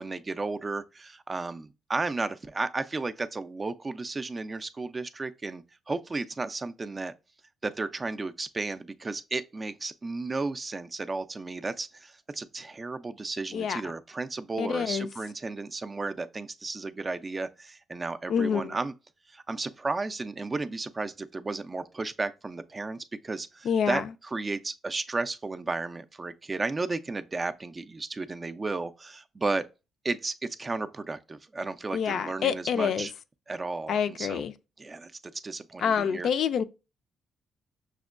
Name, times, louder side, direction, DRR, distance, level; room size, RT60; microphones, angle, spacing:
voice 1, 0.0-7.1 7.6-18.9 19.3-29.6 30.0-33.1 33.5-34.4 34.8-35.1 35.4-36.3, right 3 dB, 25° right, 0.3 m, -33 dB
voice 2, 14.6-15.1 18.3-18.8 23.7-24.0 31.9-33.1 33.9-34.5 35.8-36.6, left 7 dB, 65° left, 0.3 m, -27 dB
5.9 x 2.2 x 2.4 m
cardioid pair, 90°, 0 cm